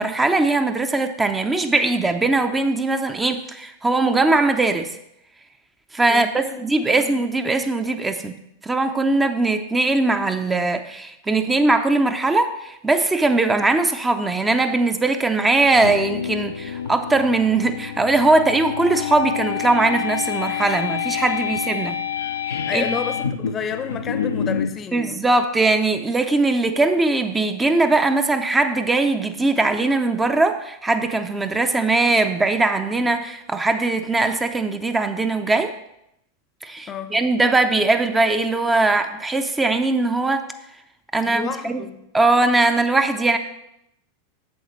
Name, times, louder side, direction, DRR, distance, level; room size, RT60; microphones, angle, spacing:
voice 1, 0.0-5.0 5.9-8.3 8.6-22.0 22.5-23.0 24.9-35.7 36.6-40.5 41.1-41.9 42.1-43.4, right 3 dB, 15° right, 7 dB, 0.6 m, -20 dB
voice 2, 6.1-6.6 6.9-7.2 22.7-25.2 36.9-37.2 41.3-42.0, left 7 dB, 30° left, 10 dB, 0.7 m, -31 dB
sound 1, 15.6-24.8, left 8 dB, 75° left, 0.4 m, -27 dB
8.0 x 7.1 x 3.1 m, 0.80 s
figure-of-eight pair, 90°, 0 cm